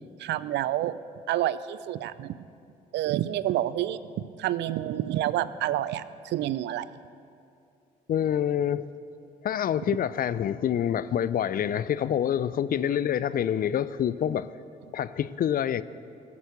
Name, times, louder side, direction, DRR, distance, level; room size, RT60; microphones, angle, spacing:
voice 1, 0.2-1.0 1.3-2.4 2.9-6.9, right 13 dB, 60° right, 0.5 m, -28 dB
voice 2, 8.1-8.8 9.4-14.5 14.9-15.8, left 9 dB, 45° left, 0.5 m, -26 dB
15.0 x 8.4 x 6.8 m
hypercardioid pair, 50°, 20 cm